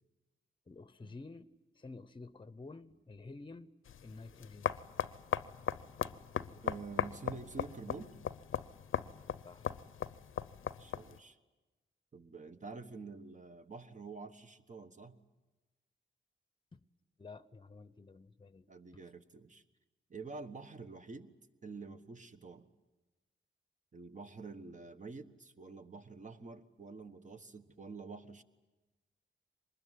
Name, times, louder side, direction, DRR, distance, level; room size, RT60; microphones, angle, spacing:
voice 1, 0.7-1.5 1.8-3.7 4.0-4.8 9.4-9.7 16.7-16.8 17.2-18.7, left 3 dB, 25° left, 0.9 m, -50 dB
sound 1, 3.9-11.2, left 9 dB, 85° left, 0.7 m, -39 dB
voice 2, 6.6-8.2 10.8-11.4 12.1-15.2 18.7-19.6 20.1-21.3 21.6-22.7 23.9-28.4, right 4 dB, 40° right, 1.3 m, -48 dB
24.5 x 20.5 x 9.3 m
wide cardioid pair, 100°, 20 cm